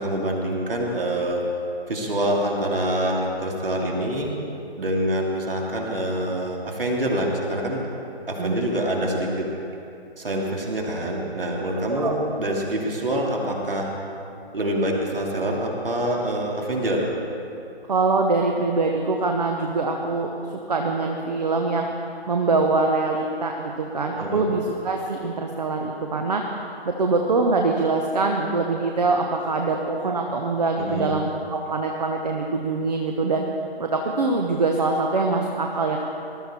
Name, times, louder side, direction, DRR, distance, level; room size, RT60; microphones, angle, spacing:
voice 1, 0.0-1.4 1.9-4.3 4.8-7.9 8.3-9.5 10.2-13.9 14.5-17.1 24.2-24.5 30.8-31.1, right 1 dB, 60° right, -1 dB, 3.0 m, -25 dB
voice 2, 17.9-21.9 22.3-26.5 26.8-33.4 33.8-36.1, right 3 dB, 40° right, 2 dB, 1.1 m, -24 dB
20.0 x 13.0 x 4.4 m, 2.7 s
figure-of-eight pair, 145°, 32 cm